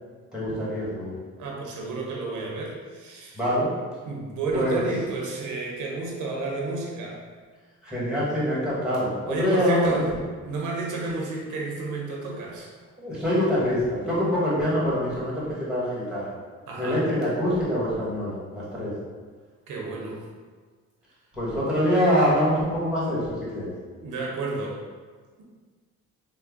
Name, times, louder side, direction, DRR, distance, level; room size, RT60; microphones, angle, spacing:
voice 1, 0.3-1.1 3.3-3.7 4.5-4.8 7.8-10.0 13.0-16.3 16.8-18.9 21.4-23.7, equal, 5° right, -8 dB, 1.5 m, -25 dB
voice 2, 1.4-3.4 4.0-7.2 9.3-10.1 10.4-12.7 16.7-17.1 19.7-20.2 23.9-24.8, right 3 dB, 85° right, -2 dB, 0.7 m, -31 dB
3.2 x 2.2 x 3.6 m, 1.5 s
cardioid pair, 90°, 30 cm